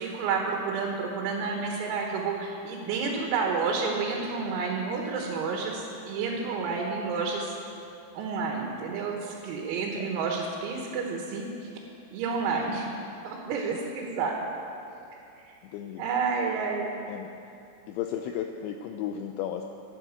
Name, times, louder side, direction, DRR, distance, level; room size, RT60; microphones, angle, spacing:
voice 1, 0.0-7.5 8.2-11.7 12.1-12.9 13.2-14.3 15.5-15.6 16.0-16.9, right 5 dB, 85° right, 0 dB, 4.1 m, -30 dB
voice 2, 15.6-16.0 17.1-17.5 17.9-19.6, left 10 dB, 85° left, 5 dB, 2.6 m, -35 dB
13.5 x 10.0 x 8.3 m, 2.6 s
omnidirectional pair, 5.9 m